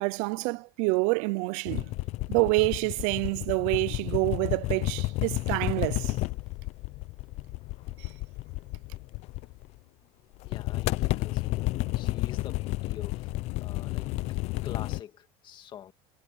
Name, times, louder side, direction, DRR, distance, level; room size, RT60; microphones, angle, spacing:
voice 1, 0.0-1.9 2.3-6.2, right 28 dB, 65° right, 0.5 m, -27 dB
sound 1, 1.7-9.8 10.4-15.0, left 19 dB, 50° left, 0.7 m, -31 dB
voice 2, 10.4-13.3 13.6-14.4 14.6-15.9, left 10 dB, 35° left, 2.1 m, -46 dB
cardioid pair, 160°, 14 cm